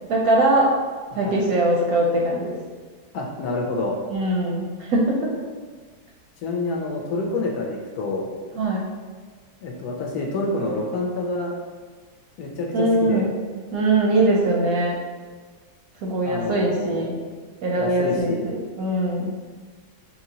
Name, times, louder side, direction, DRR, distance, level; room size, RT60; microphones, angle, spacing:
voice 1, 0.1-0.7 1.1-2.6 4.1-5.3 8.5-8.9 12.7-13.3 13.7-15.0 16.0-17.2 17.6-19.4, right 1 dB, 70° right, -2 dB, 0.9 m, -21 dB
voice 2, 3.1-4.0 6.4-8.3 9.6-11.5 12.4-13.3 16.2-17.1 17.8-18.4, left 2 dB, 70° left, 0 dB, 1.0 m, -27 dB
5.1 x 2.9 x 2.7 m, 1.5 s
omnidirectional pair, 1.9 m